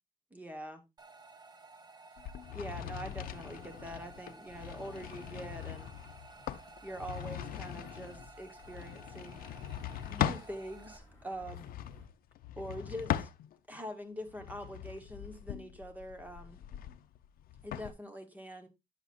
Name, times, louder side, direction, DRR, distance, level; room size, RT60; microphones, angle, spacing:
voice 1, 0.3-0.8 2.5-5.9 6.8-9.4 10.1-11.7 12.6-13.3 13.7-16.6 17.6-18.7, equal, 10° right, 1.1 m, -44 dB
sound 1, 1.0-11.0, right 2 dB, 30° right, 0.9 m, -54 dB
sound 2, 2.2-10.5 11.3-13.8 14.3-17.9, left 11 dB, 90° left, 0.5 m, -40 dB
sound 3, 6.3-12.1, left 1 dB, 15° left, 3.0 m, -60 dB
9.0 x 6.9 x 2.5 m
cardioid pair, 130°, 15 cm